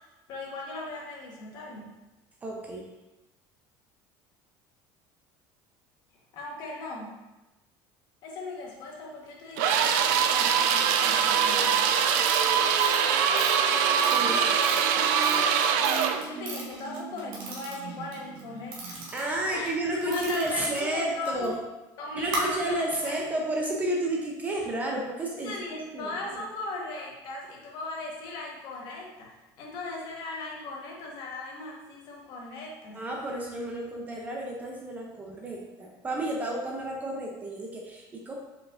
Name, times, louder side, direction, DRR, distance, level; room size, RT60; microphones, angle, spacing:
voice 1, 0.0-2.0 6.3-7.2 8.2-11.8 15.8-19.0 19.5-19.7 20.0-21.5 22.0-23.2 25.4-33.1, left 2 dB, 45° left, -1 dB, 1.0 m, -38 dB
voice 2, 2.4-2.9 14.1-14.6 19.1-21.6 22.1-25.5 25.9-26.4 32.9-38.3, right 1 dB, 15° right, 0 dB, 0.4 m, -31 dB
sound 1, 9.6-16.2, right 7 dB, 90° right, 0.4 m, -23 dB
sound 2, 11.0-19.9, right 4 dB, 70° right, 0.8 m, -41 dB
sound 3, 11.1-11.2 11.7-18.4 18.7-21.5 22.2-22.4 23.0-23.1, right 2 dB, 55° right, 1.1 m, -38 dB
4.9 x 4.5 x 2.4 m, 1.0 s
cardioid pair, 175°, 9 cm